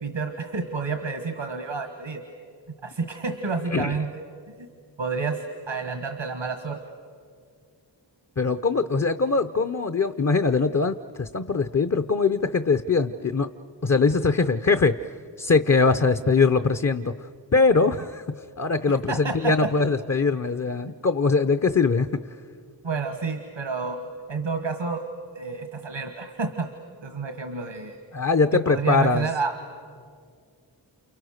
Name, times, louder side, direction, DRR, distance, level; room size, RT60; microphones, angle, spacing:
voice 1, 0.0-2.2 2.8-4.2 4.6-4.7 5.0-6.8 18.9-19.7 20.9-21.0 22.8-24.0 24.3-25.0 25.3-26.7 27.0-28.0 28.5-29.8, right 4 dB, 90° right, 6 dB, 1.5 m, -30 dB
voice 2, 8.4-13.5 13.8-15.1 15.4-17.1 17.5-18.2 18.6-22.1 28.1-29.3, left 4 dB, 35° left, 10 dB, 0.7 m, -22 dB
29.5 x 28.5 x 6.5 m, 2.2 s
wide cardioid pair, 45°, 45 cm